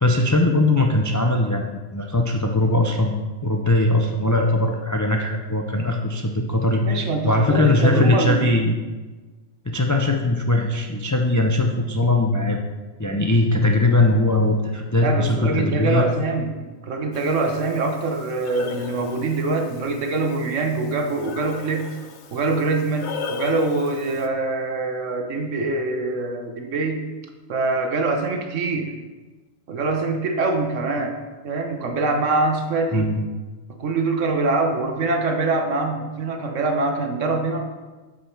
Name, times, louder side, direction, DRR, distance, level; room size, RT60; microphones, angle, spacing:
voice 1, 0.0-3.2 3.4-7.0 7.2-8.7 9.7-12.6 13.0-16.1 32.9-33.2, left 2 dB, 30° left, 2 dB, 0.3 m, -20 dB
voice 2, 6.8-8.5 15.0-16.5 16.8-21.9 22.3-27.1 27.5-28.9 29.7-31.2 31.4-33.1 33.8-37.7, right 3 dB, 65° right, 4 dB, 1.3 m, -24 dB
Breathing, 17.1-24.3, left 5 dB, 60° left, 1.0 m, -37 dB
8.4 x 5.2 x 5.8 m, 1.3 s
omnidirectional pair, 1.4 m